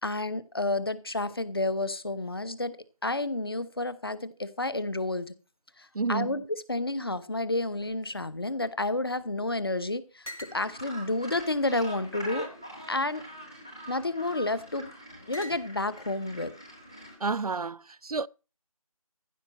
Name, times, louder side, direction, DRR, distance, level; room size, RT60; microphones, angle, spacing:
voice 1, 0.0-2.8 3.0-5.3 5.8-12.5 12.9-13.2 13.9-14.9 15.3-16.5, left 2 dB, 40° left, 0.9 m, -30 dB
voice 2, 5.9-6.4 17.2-18.3, right 4 dB, 85° right, 0.5 m, -30 dB
sound 1, 7.7-9.4 9.7-9.8 10.2-10.6 11.4-12.2 13.0-13.5 14.4-14.8 15.3-16.0, equal, 70° left, 4.3 m, -48 dB
Gull seagull, 10.4-17.1, right 1 dB, 10° left, 0.8 m, -44 dB
15.0 x 5.2 x 7.5 m
figure-of-eight pair, 170°, 19 cm